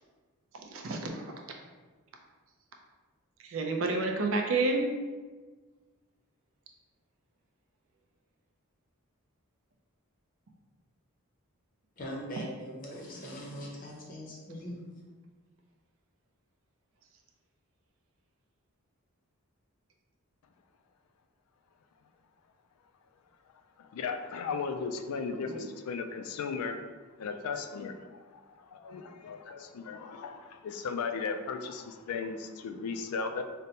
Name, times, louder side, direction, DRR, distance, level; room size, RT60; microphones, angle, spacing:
voice 1, 0.7-1.3 3.4-4.9 25.3-25.7, right 3 dB, 65° right, 2 dB, 0.5 m, -30 dB
voice 2, 12.0-14.7, equal, 40° left, -2 dB, 0.6 m, -41 dB
voice 3, 23.8-26.8 27.2-28.4 28.7-33.4, left 5 dB, 85° left, 7 dB, 0.3 m, -36 dB
5.1 x 2.1 x 2.8 m, 1.4 s
head